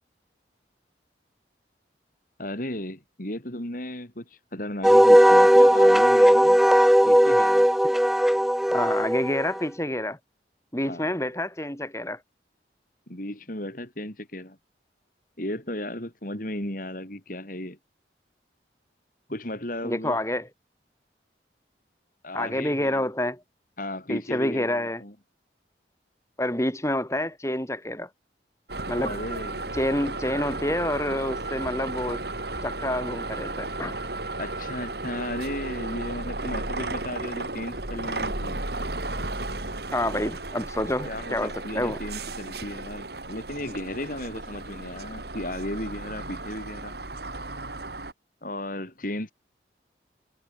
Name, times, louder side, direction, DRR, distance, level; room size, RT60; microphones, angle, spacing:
voice 1, 2.4-6.6 7.0-7.7 10.8-11.1 13.1-14.6 15.4-17.8 19.3-20.2 22.2-23.1 23.8-25.1 29.0-29.6 34.4-38.6 41.0-47.0 48.4-49.3, left 1 dB, 50° left, 4.6 m, -35 dB
Wind instrument woodwind instrument, 4.8-9.6, equal, ahead, 0.3 m, -17 dB
voice 2, 8.7-10.2 10.7-12.2 19.8-20.4 22.3-23.4 24.1-25.0 26.4-28.1 28.9-29.1 29.7-32.2 32.6-34.0 39.9-42.0, left 1 dB, 15° left, 4.5 m, -28 dB
sound 1, 28.7-48.1, right 2 dB, 60° right, 3.6 m, -34 dB
head